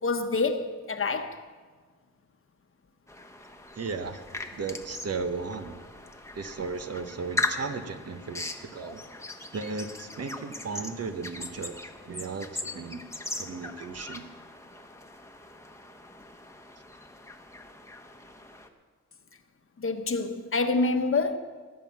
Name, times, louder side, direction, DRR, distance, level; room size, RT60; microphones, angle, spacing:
voice 1, 0.0-1.4 19.8-21.4, left 3 dB, 40° left, 1.3 m, -27 dB
sound 1, 3.1-18.7, left 2 dB, 10° left, 1.3 m, -39 dB
voice 2, 3.8-4.2 4.5-5.8 6.3-9.0 9.5-13.0 13.4-14.2, right 4 dB, 50° right, 1.3 m, -35 dB
19.5 x 7.6 x 6.2 m
cardioid pair, 85°, 31 cm